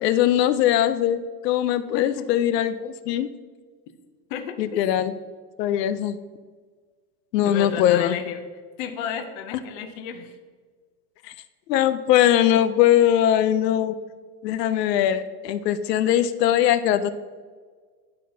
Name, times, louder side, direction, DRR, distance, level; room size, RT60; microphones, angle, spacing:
voice 1, 0.0-3.3 4.6-5.1 5.6-6.2 7.3-8.2 11.2-11.3 11.7-13.9 14.4-17.1, left 11 dB, 75° left, 11 dB, 0.6 m, -21 dB
voice 2, 1.9-2.3 4.3-4.6 7.4-8.4 8.8-10.4, left 7 dB, 35° left, 6 dB, 0.5 m, -32 dB
11.5 x 4.2 x 2.7 m, 1.5 s
supercardioid pair, 150°, 49 cm